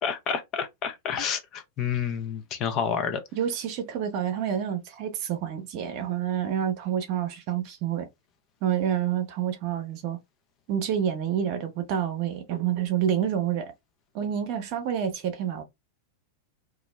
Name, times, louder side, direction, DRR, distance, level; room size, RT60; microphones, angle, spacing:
voice 1, 0.0-3.2, left 7 dB, 35° left, 0.6 m, -29 dB
voice 2, 3.3-8.1 8.6-10.2 10.7-13.7 14.1-15.6, right 9 dB, 45° right, 0.7 m, -28 dB
2.4 x 2.0 x 3.1 m
figure-of-eight pair, 90°, 0 cm